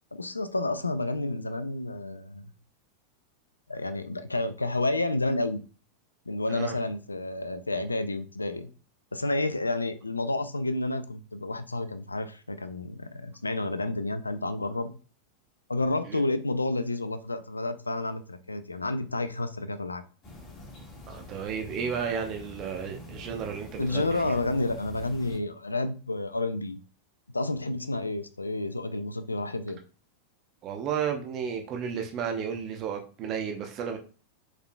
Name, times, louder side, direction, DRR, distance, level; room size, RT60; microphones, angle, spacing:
voice 1, 0.1-2.5 3.7-5.6 6.3-8.7 9.1-14.9 15.7-20.0 23.8-26.8 27.3-29.8, left 2 dB, 80° left, 11 dB, 0.4 m, -30 dB
sound 1, 20.2-25.4, left 1 dB, 25° left, 1.7 m, -45 dB
voice 2, 21.1-24.3 30.6-34.0, right 7 dB, 35° right, 4 dB, 0.7 m, -33 dB
4.7 x 4.6 x 2.2 m, 0.37 s
figure-of-eight pair, 90°, 0 cm